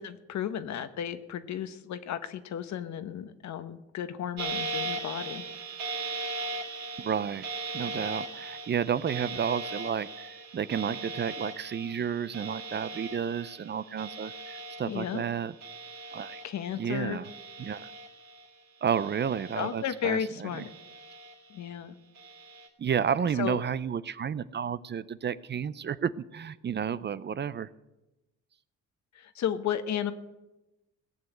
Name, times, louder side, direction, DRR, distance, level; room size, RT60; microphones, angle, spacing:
voice 1, 0.0-5.4 14.8-15.2 16.4-17.2 19.6-20.7 21.5-21.9 23.4-23.6 29.1-30.1, left 9 dB, 65° left, 11 dB, 1.1 m, -33 dB
sound 1, 4.4-16.9 17.2-18.5 18.9-20.1 20.5-21.6 22.1-22.7, right 3 dB, 60° right, 2.9 m, -39 dB
voice 2, 7.0-7.5 7.7-15.5 16.1-16.4 16.7-17.3 17.6-17.9 18.8-20.6 22.8-27.7, right 8 dB, 35° right, 17 dB, 0.5 m, -31 dB
17.5 x 7.1 x 8.0 m, 1.0 s
cardioid pair, 90°, 30 cm